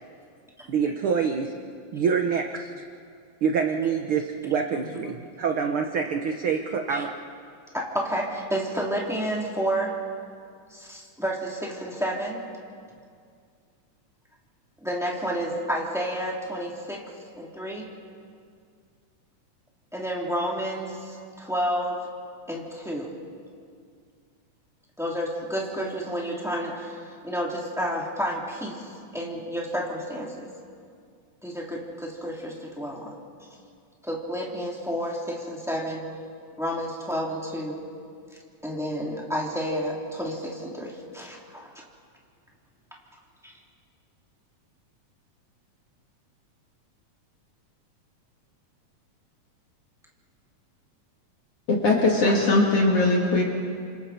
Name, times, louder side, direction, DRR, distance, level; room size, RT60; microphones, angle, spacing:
voice 1, 0.7-1.5 1.9-2.8 3.4-7.1, right 6 dB, 65° right, 4 dB, 1.4 m, -26 dB
voice 2, 7.7-10.0 10.7-12.4 14.8-17.0 17.3-17.9 19.9-22.1 22.5-23.1 25.0-30.5 31.4-33.2 34.0-36.0 36.6-37.8 38.6-41.7 43.4-43.5, equal, ahead, -4 dB, 3.2 m, -30 dB
voice 3, 51.7-53.5, left 2 dB, 50° left, -1 dB, 2.9 m, -20 dB
29.5 x 27.5 x 4.5 m, 2.2 s
omnidirectional pair, 3.6 m